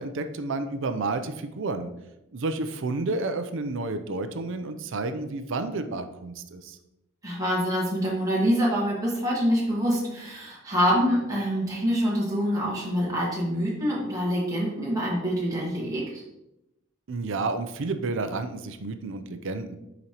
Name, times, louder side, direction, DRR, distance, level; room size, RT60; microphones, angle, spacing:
voice 1, 0.0-1.9 2.3-6.8 17.1-19.8, right 3 dB, 65° right, 8 dB, 0.5 m, -30 dB
voice 2, 7.2-16.2, equal, 15° right, -6 dB, 1.7 m, -25 dB
6.9 x 5.1 x 2.9 m, 0.87 s
head